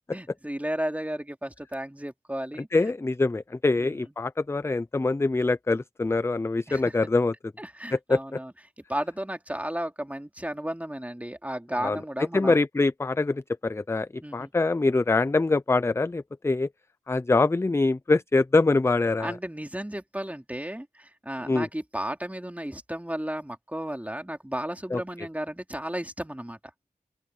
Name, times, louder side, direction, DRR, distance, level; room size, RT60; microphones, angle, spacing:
voice 1, 0.1-2.7 3.8-4.1 6.7-7.0 7.6-12.6 14.2-14.5 19.2-26.6, right 1 dB, 10° right, 2.5 m, -34 dB
voice 2, 2.7-7.3 7.9-8.4 11.8-12.0 12.3-16.7 17.1-19.4 21.5-21.7 24.9-25.0, left 3 dB, 15° left, 0.4 m, -24 dB
open air
wide cardioid pair, 70°, 15 cm